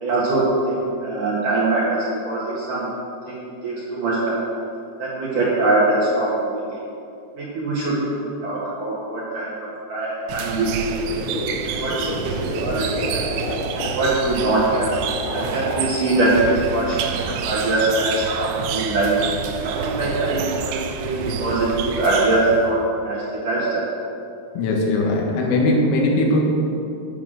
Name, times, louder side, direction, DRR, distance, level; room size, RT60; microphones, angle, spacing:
voice 1, 0.0-2.9 3.3-4.5 5.0-6.8 7.4-10.7 11.0-11.1 11.6-13.2 13.8-14.9 15.3-19.1 19.6-22.8 23.0-23.8, right 2 dB, 60° right, -7 dB, 2.3 m, -23 dB
sound 1, 10.3-22.8, right 7 dB, 90° right, 2.5 m, -29 dB
sound 2, 10.9-17.8, left 1 dB, 65° left, 3.2 m, -31 dB
voice 2, 24.6-26.4, left 2 dB, 80° left, -1 dB, 4.2 m, -19 dB
10.0 x 8.3 x 6.4 m, 2.7 s
omnidirectional pair, 5.9 m